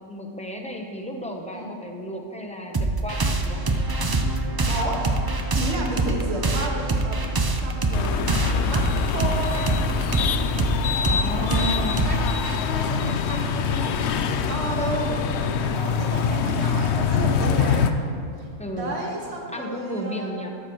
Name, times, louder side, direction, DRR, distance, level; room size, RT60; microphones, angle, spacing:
voice 1, 0.1-3.6 11.0-12.0 18.6-19.0 19.5-20.5, equal, 5° left, 1 dB, 0.8 m, -33 dB
sound 1, 2.7-13.8, right 2 dB, 30° right, 0.4 m, -25 dB
voice 2, 4.7-5.1 5.5-9.7 11.2-13.9 14.2-18.0 18.4-18.5 18.8-20.3, right 1 dB, 55° right, -2 dB, 2.0 m, -32 dB
sound 2, 7.9-17.9, left 6 dB, 65° left, 0.8 m, -24 dB
13.0 x 12.0 x 3.1 m, 2.4 s
omnidirectional pair, 1.3 m